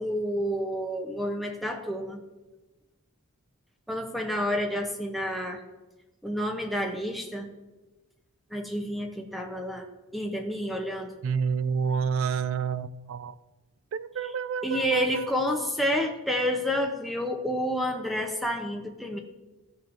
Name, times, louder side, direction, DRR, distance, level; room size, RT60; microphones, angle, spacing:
voice 1, 0.0-2.2 3.9-5.6 6.2-7.5 8.5-9.9 10.1-11.1 14.6-19.2, equal, ahead, 0.6 m, -29 dB
voice 2, 11.2-13.3 13.9-15.7 16.0-16.1, right 6 dB, 60° right, 0.3 m, -29 dB
13.0 x 6.0 x 2.5 m
head